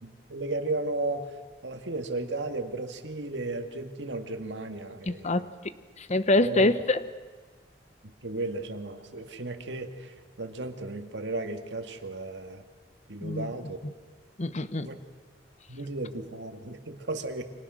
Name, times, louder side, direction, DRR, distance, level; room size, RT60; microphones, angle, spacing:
voice 1, 0.0-1.3 1.6-5.5 6.4-6.7 8.0-12.6 13.1-13.8 14.8-15.0 15.7-17.4, right 2 dB, 85° right, 6 dB, 2.0 m, -34 dB
voice 2, 5.1-5.4 6.0-7.0 13.2-13.5 13.8-13.9 14.4-14.9, left 2 dB, 40° left, 13 dB, 1.0 m, -25 dB
29.5 x 25.0 x 6.4 m, 1.4 s
head